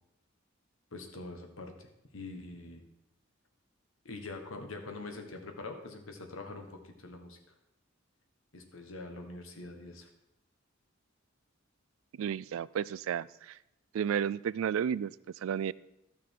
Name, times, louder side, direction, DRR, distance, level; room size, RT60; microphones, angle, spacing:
voice 1, 0.9-2.8 4.0-7.4 8.5-10.1, left 2 dB, 85° left, 5 dB, 1.4 m, -44 dB
voice 2, 12.2-13.6 13.9-15.7, right 8 dB, 80° right, 20 dB, 0.3 m, -32 dB
13.0 x 6.2 x 4.5 m, 0.87 s
head